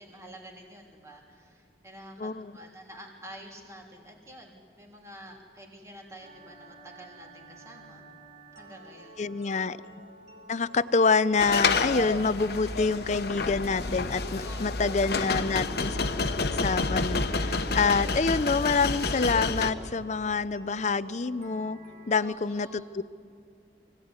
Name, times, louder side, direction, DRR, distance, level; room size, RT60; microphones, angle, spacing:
voice 1, 0.0-8.1 8.5-9.2 14.3-15.2 21.6-21.7 22.2-23.0, right 1 dB, 15° right, 0 dB, 3.3 m, -48 dB
voice 2, 2.2-2.5 9.2-9.8 10.5-16.0 16.5-21.8 22.1-23.0, left 4 dB, 40° left, 16 dB, 0.6 m, -27 dB
sound 1, 6.2-22.2, right 2 dB, 40° right, 4.8 m, -51 dB
sound 2, 11.4-19.7, left 3 dB, 60° left, 1.1 m, -29 dB
24.5 x 17.0 x 9.6 m, 2.3 s
head